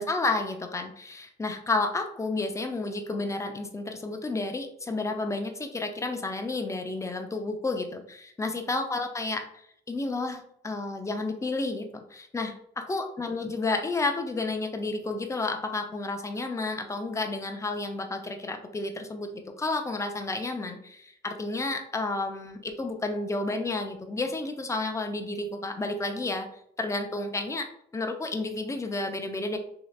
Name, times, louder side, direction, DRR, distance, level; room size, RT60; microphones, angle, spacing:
voice 1, 0.0-26.5 26.8-27.7 27.9-29.6, left 3 dB, 15° left, 5 dB, 0.5 m, -31 dB
3.0 x 2.9 x 2.3 m, 0.68 s
cardioid pair, 90°, 20 cm